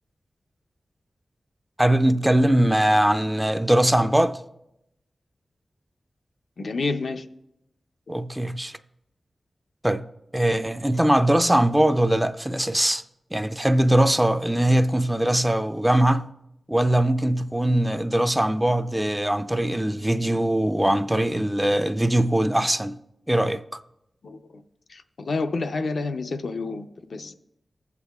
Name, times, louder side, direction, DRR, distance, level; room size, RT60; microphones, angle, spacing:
voice 1, 1.8-4.4 8.1-8.8 9.8-10.0 10.3-13.0 13.3-16.3 16.7-22.9 23.3-23.6, right 1 dB, 10° right, 0.4 m, -21 dB
voice 2, 6.6-7.2 24.2-24.6 24.9-27.3, left 3 dB, 70° left, 0.5 m, -29 dB
16.0 x 8.2 x 2.3 m
wide cardioid pair, 85°, 0 cm